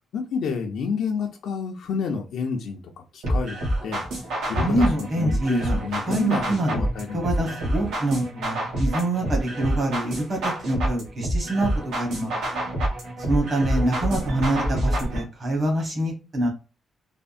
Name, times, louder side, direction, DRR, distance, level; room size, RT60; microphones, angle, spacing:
voice 1, 0.1-2.8 3.1-4.0 4.5-7.6, left 5 dB, 70° left, 0.5 m, -30 dB
sound 1, 3.2-15.2, right 1 dB, 85° right, 1.0 m, -27 dB
voice 2, 4.5-5.8 6.1-12.3 13.3-16.5, right 1 dB, 35° right, 1.2 m, -25 dB
3.4 x 2.1 x 2.4 m
cardioid pair, 170°, 0 cm